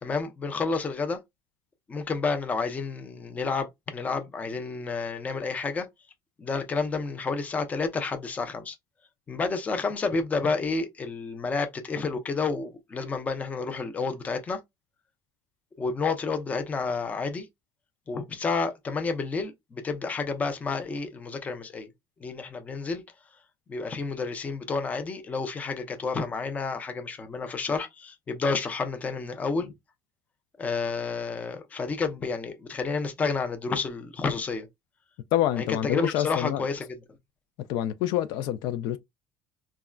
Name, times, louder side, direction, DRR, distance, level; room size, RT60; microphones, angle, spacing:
voice 1, 0.0-1.2 1.9-5.9 6.4-8.8 9.3-14.6 15.8-17.5 18.1-21.9 22.2-23.0 23.7-29.7 30.6-34.7 35.6-37.0, left 4 dB, 20° left, 0.5 m, -30 dB
voice 2, 35.3-36.6 37.7-39.0, left 12 dB, 70° left, 0.4 m, -27 dB
3.6 x 2.1 x 2.2 m
cardioid pair, 160°, 8 cm